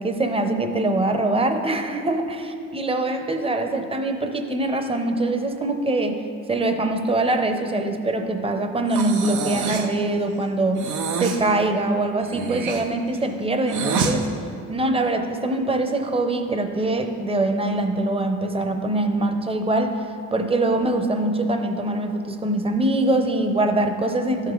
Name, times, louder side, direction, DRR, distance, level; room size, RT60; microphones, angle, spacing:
voice 1, 0.0-2.4 2.7-6.2 6.5-10.8 11.2-14.3 14.7-24.5, right 2 dB, 20° right, 6 dB, 0.8 m, -23 dB
Breathing, 8.9-10.0 10.8-11.4 12.2-14.2, right 5 dB, 75° right, 0.8 m, -27 dB
12.5 x 5.3 x 3.8 m, 2.5 s
cardioid pair, 90°, 30 cm